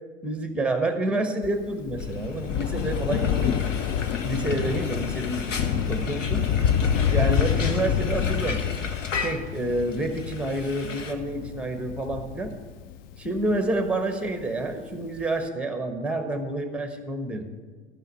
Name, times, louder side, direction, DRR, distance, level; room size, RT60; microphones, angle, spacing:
voice 1, 0.2-3.7 4.2-6.4 7.1-8.6 9.1-12.5 13.2-17.5, right 2 dB, 5° right, 6 dB, 1.2 m, -28 dB
Thunder, 1.4-14.3 15.2-15.3, left 8 dB, 25° left, 0.3 m, -27 dB
Frying (food), 2.0-11.1, left 4 dB, 80° left, 1.2 m, -36 dB
13.5 x 6.3 x 6.7 m, 1.4 s
figure-of-eight pair, 90°, 37 cm